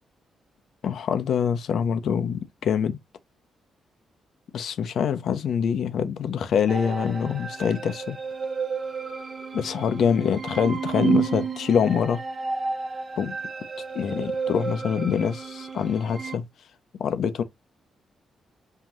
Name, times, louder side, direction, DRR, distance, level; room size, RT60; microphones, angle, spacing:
voice 1, 0.8-3.0 4.5-8.2 9.5-12.2 13.2-13.4 13.9-16.5 17.0-17.4, left 7 dB, 70° left, 0.7 m, -25 dB
sound 1, 6.7-16.4, right 5 dB, 40° right, 0.7 m, -31 dB
5.6 x 2.5 x 2.9 m
cardioid pair, 75°, 0 cm